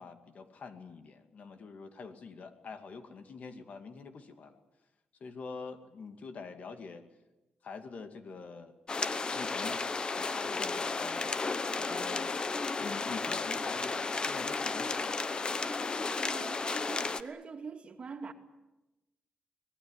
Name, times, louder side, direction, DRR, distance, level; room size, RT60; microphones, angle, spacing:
voice 1, 0.0-4.6 5.2-7.0 7.6-8.7 9.2-11.4 11.8-12.5 12.8-15.2, left 4 dB, 55° left, 2.4 m, -45 dB
sound 1, 8.9-17.2, left 4 dB, 30° left, 1.0 m, -33 dB
voice 2, 16.2-18.3, right 5 dB, 40° right, 2.4 m, -44 dB
25.0 x 18.5 x 9.9 m
cardioid pair, 120°, 3 cm